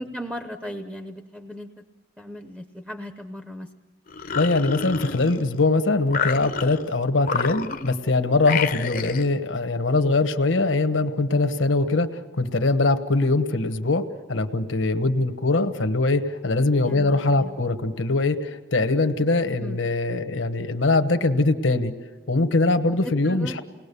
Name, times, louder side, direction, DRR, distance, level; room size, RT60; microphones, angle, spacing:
voice 1, 0.0-1.7 2.2-3.7 16.8-17.5 19.6-19.8 23.0-23.6, equal, 5° right, 7 dB, 0.7 m, -36 dB
sound 1, 4.1-5.6 6.1-6.9 7.2-8.0 8.4-9.3, left 6 dB, 45° left, 0.7 m, -29 dB
voice 2, 4.3-21.9 22.3-23.6, left 2 dB, 80° left, 8 dB, 1.2 m, -22 dB
29.0 x 19.5 x 6.9 m, 1.3 s
head